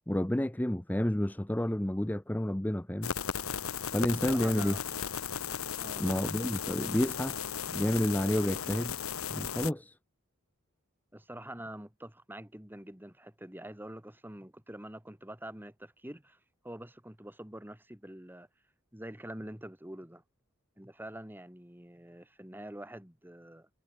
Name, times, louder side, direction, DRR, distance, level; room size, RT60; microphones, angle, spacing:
voice 1, 0.1-3.1 3.9-4.8 6.0-7.4 7.7-8.9 9.3-10.0, left 1 dB, 10° left, 0.6 m, -30 dB
sound 1, 3.0-9.7, left 7 dB, 80° left, 1.2 m, -36 dB
voice 2, 4.3-4.8 5.8-6.2 11.1-16.4 16.6-18.5 18.9-20.2 20.8-23.7, right 1 dB, 10° right, 2.0 m, -46 dB
head